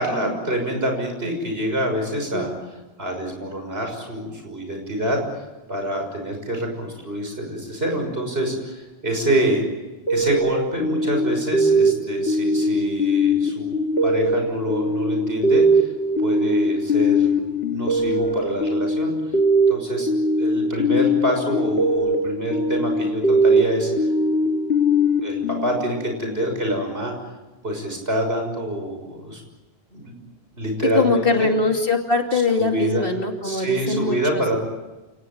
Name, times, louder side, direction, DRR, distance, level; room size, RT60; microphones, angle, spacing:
voice 1, 0.0-2.5 3.0-5.2 5.7-9.6 10.1-13.7 14.0-15.9 16.2-17.4 17.7-19.1 19.7-20.1 20.4-23.9 24.7-27.1 27.6-29.4 29.9-30.1 30.5-31.5 32.3-33.1 33.4-34.6, right 1 dB, 70° right, 3 dB, 6.6 m, -26 dB
sound 1, 10.1-26.4, equal, 80° left, 2.1 m, -21 dB
voice 2, 30.9-34.4, left 3 dB, 60° left, 3 dB, 2.9 m, -22 dB
28.5 x 19.0 x 8.8 m, 1.1 s
omnidirectional pair, 1.1 m